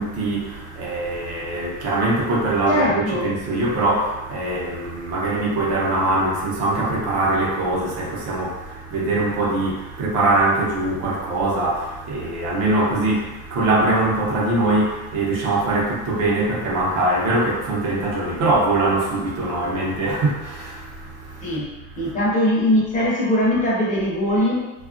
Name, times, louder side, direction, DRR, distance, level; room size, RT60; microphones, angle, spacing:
voice 1, 0.0-21.6 21.9-22.1, right 2 dB, 55° right, -3 dB, 0.7 m, -22 dB
voice 2, 2.7-3.3 21.4-21.7 22.0-24.7, left 1 dB, 25° left, -6 dB, 0.6 m, -21 dB
2.8 x 2.3 x 2.5 m, 1.1 s
cardioid pair, 165°, 32 cm